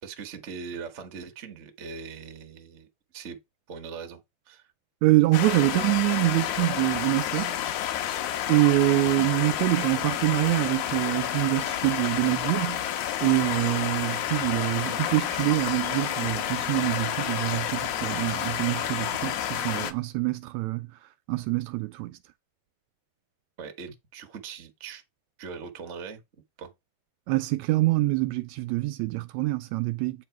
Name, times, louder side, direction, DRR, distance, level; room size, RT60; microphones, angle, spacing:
voice 1, 0.0-2.9 3.1-3.4 3.7-4.2 4.5-4.7 9.2-9.3 23.6-25.0 25.4-26.2 26.6-26.7, right 5 dB, 55° right, 0.7 m, -40 dB
voice 2, 5.0-7.6 8.5-12.9 13.2-20.9 21.3-22.2 27.3-30.2, right 19 dB, 80° right, 1.7 m, -25 dB
sound 1, 5.3-19.9, left 11 dB, 80° left, 2.3 m, -30 dB
8.8 x 4.2 x 4.6 m
omnidirectional pair, 3.5 m